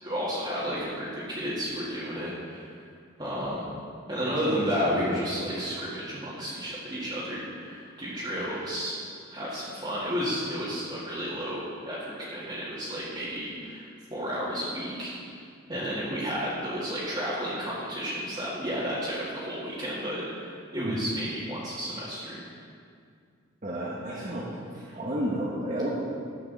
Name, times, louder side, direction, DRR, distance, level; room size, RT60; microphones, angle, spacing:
voice 1, 0.0-2.8 3.2-3.7 4.1-9.0 9.3-15.1 15.7-22.4, equal, 25° right, -11 dB, 2.0 m, -32 dB
voice 2, 23.6-25.9, equal, 40° right, -5 dB, 1.3 m, -31 dB
14.0 x 8.3 x 4.1 m, 2.3 s
head